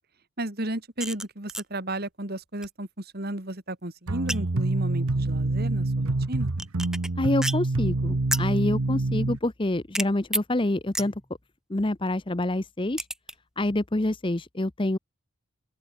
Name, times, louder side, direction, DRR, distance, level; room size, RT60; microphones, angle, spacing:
voice 1, 0.4-6.5, right 1 dB, 45° right, 2.9 m, -33 dB
sound 1, 1.0-1.2 1.5-1.6 2.6-2.7 4.3-4.6 6.6-7.1 7.4-7.8 8.3-8.6 9.9-10.0 10.3-10.4 10.9-11.2 13.0-13.3, right 1 dB, 5° right, 2.9 m, -30 dB
sound 2, 4.1-9.4, right 2 dB, 80° right, 1.1 m, -26 dB
voice 2, 7.2-11.1 11.7-13.0 13.6-15.0, left 1 dB, 25° left, 0.8 m, -27 dB
open air
head